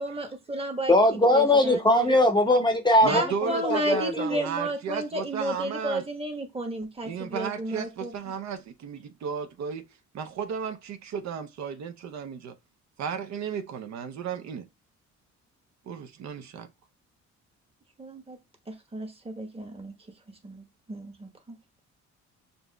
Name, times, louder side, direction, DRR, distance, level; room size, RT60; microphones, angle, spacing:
voice 1, 0.0-0.9 1.3-2.1 3.1-8.1 18.0-18.4 18.7-19.9 20.3-21.6, right 1 dB, 20° right, 1.1 m, -32 dB
voice 2, 0.9-4.4, left 1 dB, 15° left, 0.7 m, -21 dB
voice 3, 3.0-6.0 7.1-9.8 10.1-12.5 13.0-14.7 15.9-16.7, right 7 dB, 65° right, 0.6 m, -34 dB
6.8 x 2.6 x 2.2 m
cardioid pair, 90°, 30 cm